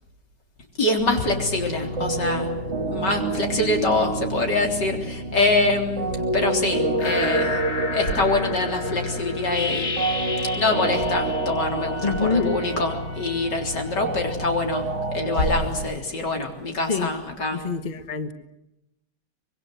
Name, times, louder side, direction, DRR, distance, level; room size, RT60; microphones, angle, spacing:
voice 1, 0.8-2.5 2.9-10.1 10.6-17.6, left 2 dB, 70° left, 3 dB, 4.3 m, -25 dB
sound 1, 1.0-15.9, right 2 dB, 40° right, 2.1 m, -28 dB
sound 2, 7.0-12.4, left 4 dB, 45° left, 2.3 m, -32 dB
voice 2, 12.0-12.6 16.9-17.1 17.5-18.3, left 4 dB, 25° left, 9 dB, 1.2 m, -25 dB
25.0 x 22.0 x 8.0 m, 0.89 s
omnidirectional pair, 1.9 m